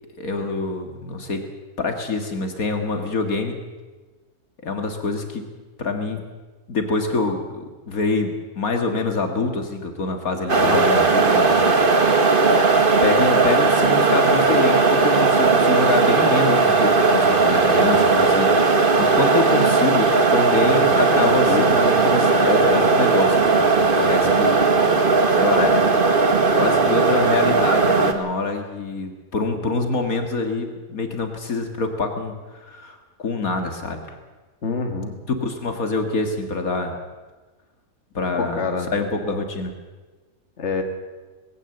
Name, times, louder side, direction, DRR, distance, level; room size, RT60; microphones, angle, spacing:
voice 1, 0.2-1.4 1.8-3.5 4.6-5.4 5.8-6.2 6.7-12.7 13.0-24.5 24.9-25.9 26.6-34.1 35.4-37.0 38.1-38.6 38.9-39.7, left 3 dB, 65° left, 5 dB, 2.3 m, -26 dB
sound 1, 10.5-28.1, right 4 dB, 35° right, 1.6 m, -17 dB
voice 2, 10.6-11.0 20.9-21.9 34.6-35.1 38.4-38.9 40.6-40.8, left 4 dB, 50° left, 4 dB, 2.2 m, -27 dB
20.5 x 16.5 x 7.9 m, 1.3 s
omnidirectional pair, 1.6 m